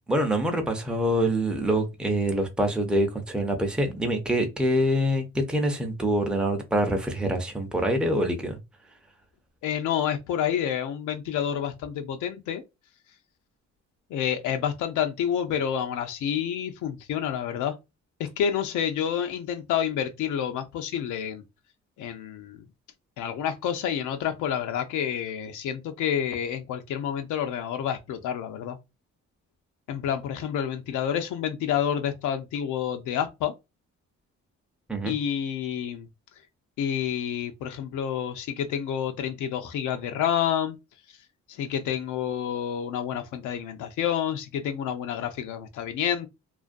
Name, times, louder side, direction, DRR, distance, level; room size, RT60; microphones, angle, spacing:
voice 1, 0.1-8.6 34.9-35.1, right 1 dB, 5° right, 0.5 m, -25 dB
voice 2, 9.6-12.6 14.1-17.8 18.4-21.4 22.0-22.6 23.2-28.8 29.9-33.5 35.0-36.1 36.8-40.8 41.5-46.3, left 9 dB, 80° left, 0.5 m, -29 dB
2.4 x 2.2 x 2.4 m
cardioid pair, 90°, 30 cm